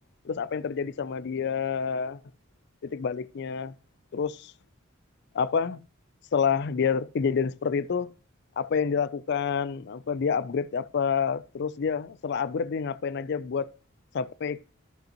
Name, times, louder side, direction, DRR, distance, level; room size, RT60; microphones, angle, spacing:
voice 1, 0.2-2.2 2.8-3.7 4.1-4.5 5.3-5.8 6.3-8.1 8.6-13.7 14.1-14.6, left 6 dB, 60° left, 0.4 m, -28 dB
14.0 x 5.3 x 2.9 m
head